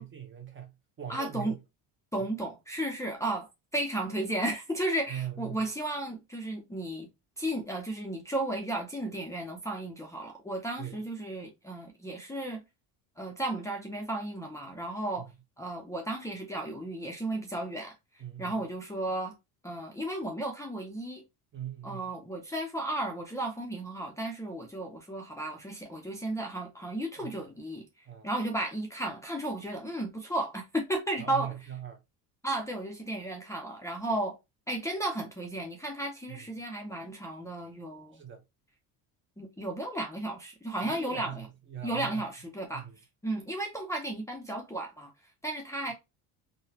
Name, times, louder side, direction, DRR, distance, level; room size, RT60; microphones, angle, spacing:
voice 1, 0.0-1.6 5.1-5.6 10.8-11.0 18.2-18.6 21.5-22.1 27.2-27.3 28.0-28.3 31.2-32.0 36.3-36.4 38.1-38.4 40.8-42.2 42.7-43.0, right 10 dB, 30° right, 0.8 m, -41 dB
voice 2, 1.1-1.5 2.1-7.1 7.4-12.6 13.2-15.3 15.6-17.9 18.4-19.4 19.6-21.2 21.8-27.9 28.2-31.5 32.4-34.4 34.7-38.2 39.4-41.5 41.8-42.9 43.2-45.1 45.4-45.9, right 1 dB, 10° left, 0.6 m, -34 dB
3.8 x 2.2 x 2.7 m
cardioid pair, 115°, 40 cm